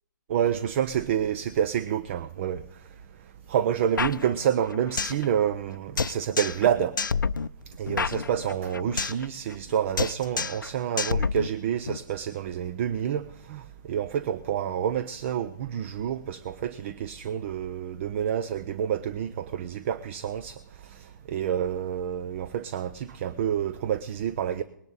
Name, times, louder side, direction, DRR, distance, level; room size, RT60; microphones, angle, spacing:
voice 1, 0.3-2.6 3.5-7.0 7.8-24.6, right 9 dB, 40° right, 0.6 m, -28 dB
sound 1, 4.0-5.3 5.5-5.6 6.0-6.7 7.0-9.3 9.5-9.7 10.0-10.7 11.0-12.0, left 5 dB, 90° left, 0.5 m, -29 dB
20.5 x 10.5 x 4.0 m
hypercardioid pair, 140°, 10 cm